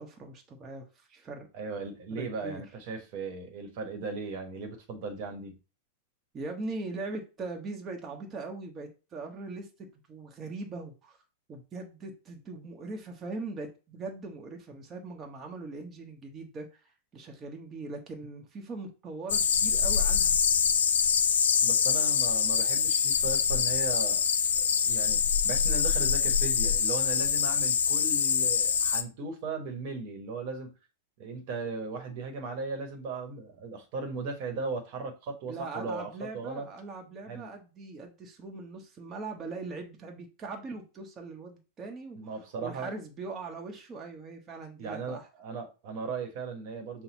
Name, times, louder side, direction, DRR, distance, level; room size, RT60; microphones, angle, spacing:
voice 1, 0.0-1.5 2.1-2.6 6.3-11.2 11.5-20.3 35.5-42.3 42.6-45.3, right 3 dB, 25° right, 1.1 m, -41 dB
voice 2, 1.5-5.5 21.6-24.2 24.8-30.7 31.2-36.7 37.3-37.5 42.1-42.9 44.8-47.0, right 4 dB, 50° right, 1.2 m, -37 dB
sound 1, 19.3-29.0, left 7 dB, 75° left, 0.5 m, -25 dB
5.7 x 2.2 x 4.1 m
hypercardioid pair, 100°, 0 cm